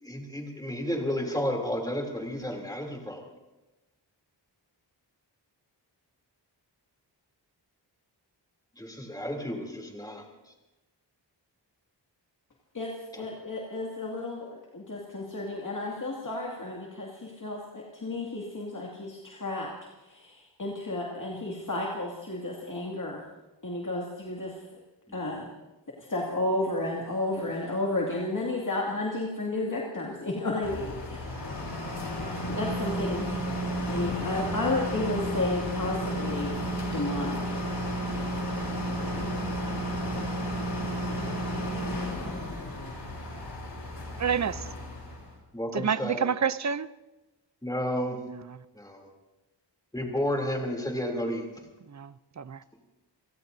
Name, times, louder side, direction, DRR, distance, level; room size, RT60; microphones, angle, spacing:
voice 1, 0.0-3.3 8.8-10.2 13.1-13.2 25.1-25.5 44.5-44.6 45.5-46.2 47.6-48.2 48.7-49.1 49.9-51.5, equal, 10° left, 1 dB, 3.1 m, -32 dB
voice 2, 13.2-14.4 14.7-19.7 20.1-23.2 23.6-24.5 25.1-25.5 26.0-31.5 32.5-33.4 33.9-36.5 36.9-37.6, left 2 dB, 45° left, -2 dB, 2.4 m, -32 dB
sound 1, 30.6-45.3, equal, 65° left, 4.7 m, -32 dB
voice 3, 44.2-44.6 45.7-46.9 48.3-48.6 51.9-52.6, right 7 dB, 40° right, 16 dB, 0.5 m, -29 dB
29.0 x 17.5 x 2.7 m, 1.1 s
wide cardioid pair, 100°, 44 cm